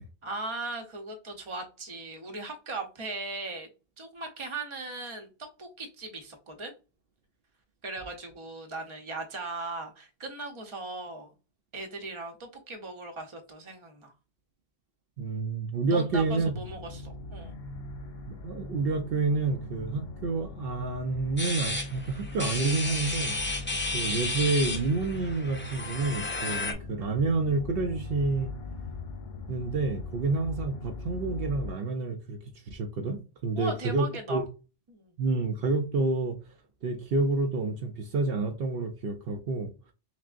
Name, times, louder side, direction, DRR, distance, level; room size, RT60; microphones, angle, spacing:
voice 1, 0.2-3.7 4.0-5.3 5.6-6.7 7.8-11.3 11.7-14.1 15.8-17.5 33.6-34.4 34.9-35.1, right 3 dB, 30° right, 0.8 m, -38 dB
voice 2, 15.2-16.5 18.3-23.4 23.9-28.5 29.5-34.4 35.2-36.4 36.8-39.9, right 3 dB, 70° right, 0.8 m, -29 dB
sound 1, 16.1-31.7, left 3 dB, 75° left, 0.9 m, -40 dB
sound 2, 21.4-26.7, left 2 dB, 15° left, 0.4 m, -33 dB
6.0 x 2.1 x 2.4 m
omnidirectional pair, 1.0 m